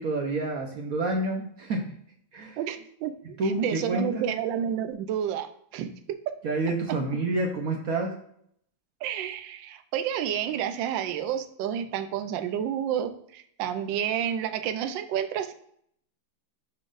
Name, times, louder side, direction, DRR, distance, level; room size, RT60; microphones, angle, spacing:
voice 1, 0.0-1.8 2.3-2.6 3.4-4.3 6.4-8.1, right 2 dB, 60° right, 2 dB, 1.0 m, -28 dB
voice 2, 2.6-5.9 9.0-15.5, right 9 dB, 75° right, 8 dB, 1.3 m, -30 dB
11.0 x 3.9 x 2.5 m, 0.67 s
omnidirectional pair, 2.2 m